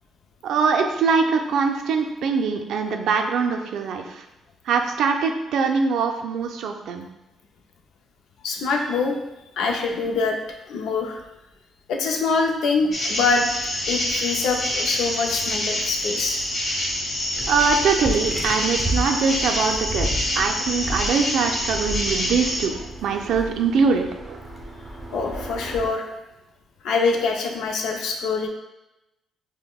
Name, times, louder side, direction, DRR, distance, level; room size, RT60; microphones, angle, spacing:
voice 1, 0.4-4.2 4.7-7.1 17.5-22.7 23.0-24.4, right 5 dB, 75° right, 4 dB, 0.4 m, -23 dB
voice 2, 8.4-9.2 9.6-10.4 10.7-11.2 11.9-13.5 13.9-16.4 25.1-26.0 26.8-28.5, left 4 dB, 80° left, 2 dB, 0.5 m, -24 dB
sound 1, 12.9-22.7, left 1 dB, 45° left, 1.0 m, -26 dB
sound 2, 17.3-25.9, equal, 10° right, 0.7 m, -32 dB
5.2 x 2.1 x 2.3 m, 0.95 s
cardioid pair, 90°, 0 cm